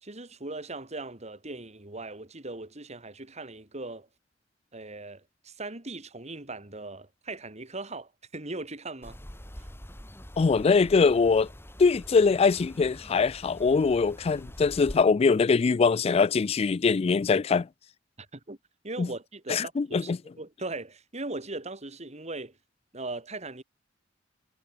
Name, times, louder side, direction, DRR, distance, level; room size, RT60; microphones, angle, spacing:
voice 1, 0.0-4.1 4.7-9.2 9.6-9.7 18.3-18.6 18.8-20.1 20.4-22.6 22.9-23.6, right 2 dB, 35° right, 2.9 m, -39 dB
sound 1, 9.0-15.0, equal, 15° left, 5.3 m, -45 dB
voice 2, 10.4-11.5 11.8-17.7 19.0-19.1 19.5-20.2, left 4 dB, 30° left, 0.3 m, -22 dB
head